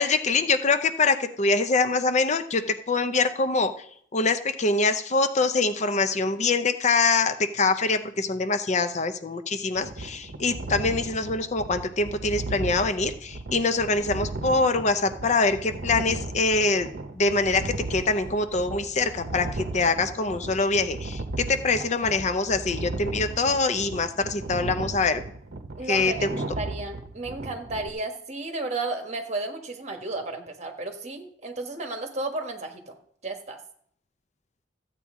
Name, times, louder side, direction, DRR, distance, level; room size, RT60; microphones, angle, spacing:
voice 1, 0.0-2.6 2.9-3.7 4.1-16.9 17.1-25.2 25.9-26.3, left 3 dB, 40° left, 9 dB, 0.6 m, -24 dB
sound 1, 9.8-27.9, right 2 dB, 55° right, 0.8 m, -36 dB
voice 2, 25.8-32.9 33.2-33.6, right 2 dB, 40° right, 4 dB, 1.3 m, -33 dB
14.5 x 8.3 x 3.7 m, 0.64 s
head